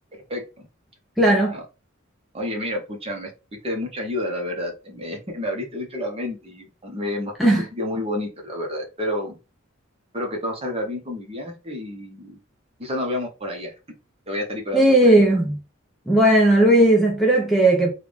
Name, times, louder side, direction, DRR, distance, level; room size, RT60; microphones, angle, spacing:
voice 1, 0.1-0.7 1.5-1.6 2.3-7.3 7.7-9.4 10.1-12.4 12.8-13.7 14.3-15.1, left 1 dB, 30° right, 1.0 m, -30 dB
voice 2, 1.2-1.6 7.4-7.6 14.7-15.6 16.1-17.9, right 1 dB, ahead, 0.6 m, -16 dB
3.6 x 2.4 x 3.4 m
head